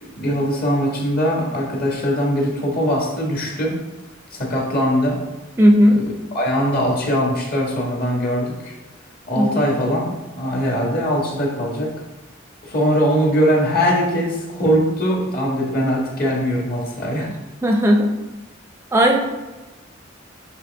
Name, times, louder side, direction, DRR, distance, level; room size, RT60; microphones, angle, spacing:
voice 1, 0.0-3.8 4.3-5.2 5.9-8.7 9.3-11.9 12.6-17.3, equal, 50° left, -1 dB, 1.5 m, -21 dB
voice 2, 5.6-6.0 9.4-9.5 17.6-18.1 18.9-19.2, equal, 15° right, 1 dB, 0.5 m, -14 dB
8.1 x 3.5 x 3.3 m, 1.1 s
head